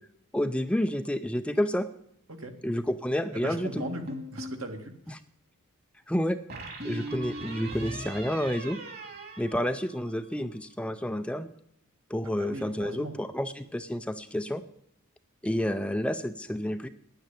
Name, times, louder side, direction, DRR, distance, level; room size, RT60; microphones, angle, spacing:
voice 1, 0.3-1.9 2.6-3.8 6.1-6.4 6.8-8.8 9.4-11.5 12.1-14.6 15.4-16.9, equal, 5° left, 9 dB, 0.5 m, -29 dB
voice 2, 3.3-4.9 12.2-13.2, right 2 dB, 65° right, 5 dB, 2.0 m, -39 dB
sound 1, 3.8-4.7 6.5-10.3, right 1 dB, 45° right, 2.5 m, -39 dB
10.5 x 9.3 x 8.4 m, 0.74 s
head